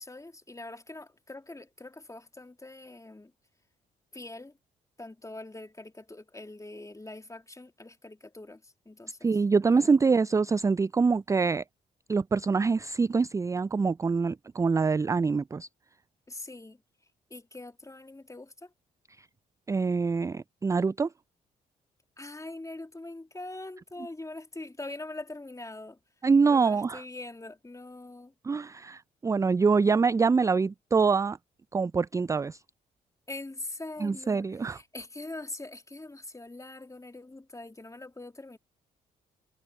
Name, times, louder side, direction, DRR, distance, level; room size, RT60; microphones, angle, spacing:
voice 1, 0.0-3.3 4.1-4.6 5.0-9.3 9.7-10.0 16.3-16.8 17.3-18.7 22.2-26.0 26.5-28.3 33.3-38.6, left 2 dB, 15° left, 2.5 m, -43 dB
voice 2, 9.2-11.6 12.1-15.7 19.7-21.1 26.2-27.0 28.4-31.4 31.7-32.6 34.0-34.8, right 4 dB, 15° right, 0.3 m, -25 dB
hypercardioid pair, 45°, 20 cm